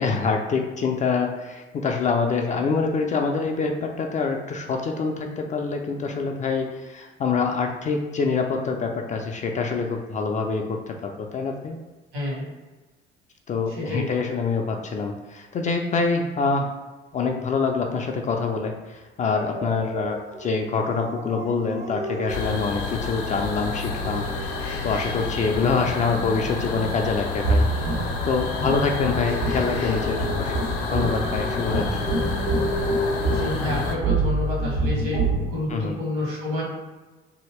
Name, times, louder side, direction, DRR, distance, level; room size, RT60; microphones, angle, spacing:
voice 1, 0.0-11.8 13.5-16.7 17.1-27.6 28.2-30.6 30.9-32.1 35.7-36.0, left 4 dB, 25° left, 3 dB, 0.3 m, -25 dB
voice 2, 12.1-12.5 13.7-14.1 28.6-28.8 33.3-36.6, left 2 dB, 65° right, -4 dB, 1.3 m, -29 dB
Dog, 19.3-25.2 28.3-32.9, right 1 dB, 25° right, 0.5 m, -37 dB
sound 1, 22.3-33.9, left 4 dB, 60° left, 0.7 m, -29 dB
sound 2, 27.3-35.4, right 2 dB, 85° right, 1.4 m, -26 dB
2.8 x 2.7 x 3.1 m, 1.2 s
figure-of-eight pair, 50°, 30 cm